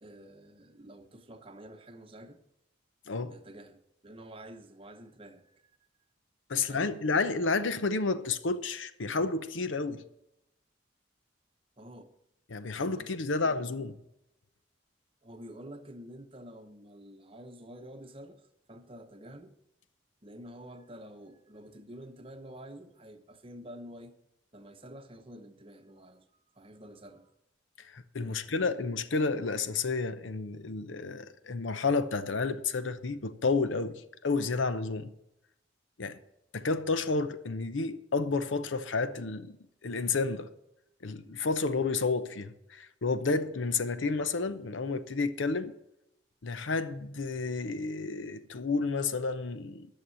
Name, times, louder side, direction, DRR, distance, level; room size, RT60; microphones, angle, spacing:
voice 1, 0.0-2.4 3.3-5.6 6.5-7.0 11.8-12.1 13.0-13.7 15.2-18.4 18.7-19.6 20.2-24.2 24.5-26.3 26.5-27.3 28.2-28.8, right 1 dB, 30° right, 0.9 m, -49 dB
voice 2, 6.5-10.0 12.5-13.9 27.9-35.1 36.0-36.2 36.5-39.6 39.8-40.5 41.0-45.7 46.4-49.9, left 4 dB, 80° left, 0.8 m, -31 dB
11.5 x 6.6 x 7.6 m
head